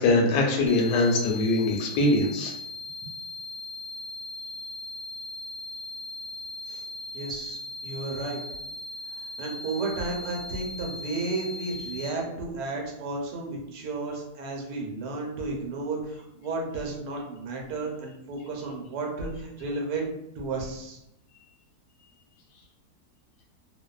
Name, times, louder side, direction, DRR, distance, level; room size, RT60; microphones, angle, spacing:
voice 1, 0.0-2.5, left 2 dB, 75° left, 1 dB, 1.0 m, -22 dB
sound 1, 0.7-12.1, left 2 dB, 50° left, 0.8 m, -39 dB
voice 2, 7.1-8.4 9.4-20.1 20.4-21.0, right 3 dB, 80° right, 0 dB, 1.2 m, -33 dB
2.6 x 2.3 x 2.3 m, 0.83 s
omnidirectional pair, 1.8 m